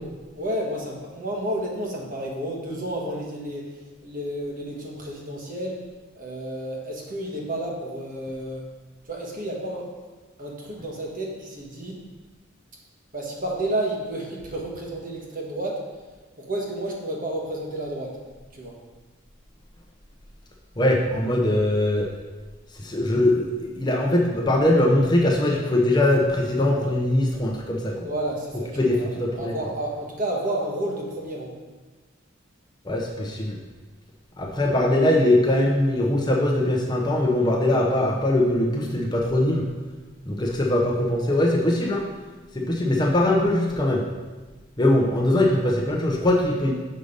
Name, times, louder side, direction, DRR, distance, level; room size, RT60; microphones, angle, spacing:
voice 1, 0.3-5.8 6.1-8.7 9.1-9.9 10.4-12.0 13.1-15.9 16.4-18.2 18.5-18.7 28.0-29.1 29.4-31.5, right 1 dB, 40° right, -1 dB, 1.4 m, -31 dB
voice 2, 20.8-22.1 22.8-28.1 28.8-29.5 32.8-33.6 34.4-39.7 40.3-42.0 42.5-44.0 44.8-46.7, left 1 dB, 20° left, -1 dB, 0.7 m, -21 dB
6.5 x 5.6 x 5.1 m, 1.3 s
head